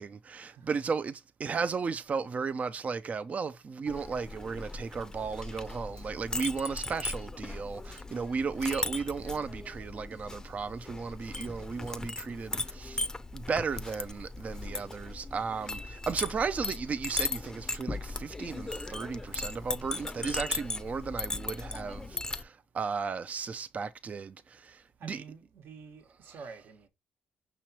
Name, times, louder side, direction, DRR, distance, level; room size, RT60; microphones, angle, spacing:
voice 1, 0.0-13.1 13.3-25.2, right 5 dB, 40° right, 0.4 m, -35 dB
Chink clink, 3.9-22.4, left 3 dB, 15° left, 0.5 m, -38 dB
voice 2, 25.0-26.9, right 5 dB, 70° right, 1.1 m, -48 dB
5.8 x 3.0 x 2.8 m
cardioid pair, 85°, 4 cm